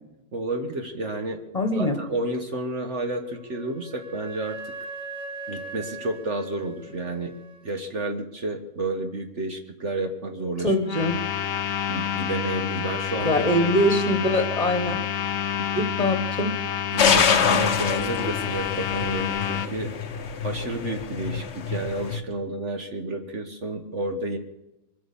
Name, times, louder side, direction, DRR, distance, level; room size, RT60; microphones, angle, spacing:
voice 1, 0.3-1.4 1.8-4.7 5.5-7.3 7.6-10.8 11.9-13.7 15.6-15.7 16.9-19.9 20.4-24.4, right 2 dB, 50° right, 5 dB, 1.4 m, -31 dB
voice 2, 1.5-1.9 10.6-11.2 13.2-15.0 15.7-16.5, left 1 dB, 25° left, 6 dB, 1.5 m, -23 dB
Wind instrument woodwind instrument, 3.2-7.8, right 3 dB, 5° right, 1.2 m, -40 dB
sound 1, 10.8-19.7, left 9 dB, 65° left, 0.6 m, -28 dB
sound 2, 17.0-22.2, left 6 dB, 50° left, 1.1 m, -25 dB
23.5 x 8.5 x 7.0 m, 0.98 s
omnidirectional pair, 1.8 m